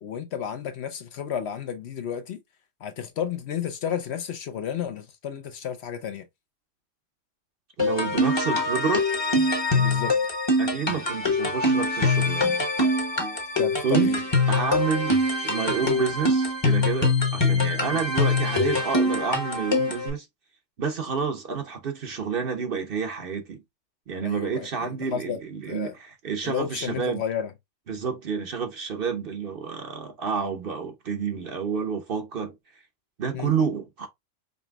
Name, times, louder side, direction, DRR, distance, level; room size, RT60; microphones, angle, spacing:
voice 1, 0.0-2.4 2.8-6.2 9.7-10.2 13.6-14.2 17.8-18.0 24.2-24.7 25.1-25.4 25.7-25.9 26.4-27.5 33.3-33.5, left 8 dB, 65° left, 0.8 m, -32 dB
sound 1, 7.8-20.1, left 2 dB, 25° left, 0.9 m, -24 dB
voice 2, 7.8-9.1 10.6-12.6 13.8-14.1 14.5-20.3 20.8-23.6 24.1-27.2 27.9-32.5 33.2-34.1, right 6 dB, 50° right, 0.9 m, -29 dB
5.1 x 2.9 x 2.3 m
omnidirectional pair, 1.3 m